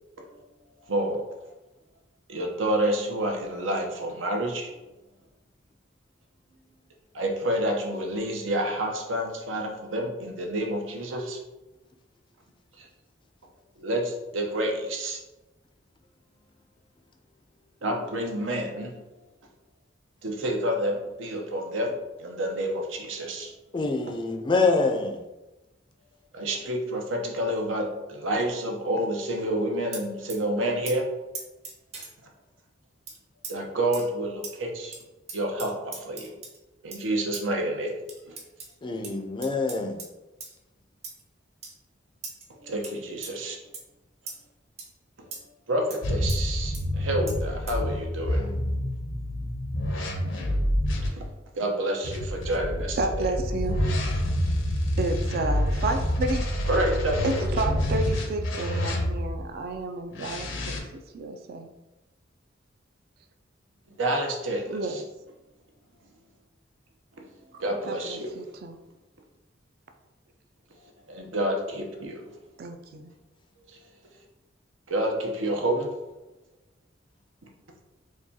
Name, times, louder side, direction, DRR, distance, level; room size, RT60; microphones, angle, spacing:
voice 1, 0.9-1.2 2.3-4.7 7.1-11.4 12.8-12.9 13.8-15.2 17.8-18.9 20.2-21.9 22.2-23.5 26.3-31.1 33.5-34.9 35.3-36.3 36.8-38.0 38.3-38.4 42.6-43.6 45.7-48.4 51.1-51.2 51.5-53.3 56.7-57.6 64.0-65.0 67.6-68.3 71.1-72.2 73.7-73.8 74.9-75.9, right 1 dB, 90° right, 0.7 m, -29 dB
voice 2, 23.7-25.2 38.8-40.0, left 3 dB, 25° left, 0.4 m, -25 dB
sound 1, 29.9-30.4 30.9-31.0 31.3-32.1 33.1-33.2 33.4-33.5 33.9-34.1 34.4-34.5 34.9-35.0 35.3-36.6 36.9-37.0 37.3-37.4 38.1-38.7 39.0-39.1 39.4-40.1 40.4-40.6 41.0-41.2 41.6-41.7 42.2-42.5 42.8-42.9 43.2-43.3 43.7-43.8 44.3-44.4 44.8-44.9 45.3-45.4 45.9-46.0 46.3-46.4 46.7-46.9 47.3-47.4 47.7-47.8, right 4 dB, 35° right, 0.7 m, -39 dB
sound 2, 46.0-51.1 52.0-59.4 60.1-60.8, equal, 75° left, 0.7 m, -27 dB
voice 3, 53.0-53.8 55.0-56.5 57.2-60.8 61.1-61.7 64.7-65.0 67.9-68.8 72.6-73.1, right 2 dB, 55° right, 0.3 m, -31 dB
4.7 x 2.3 x 2.7 m
head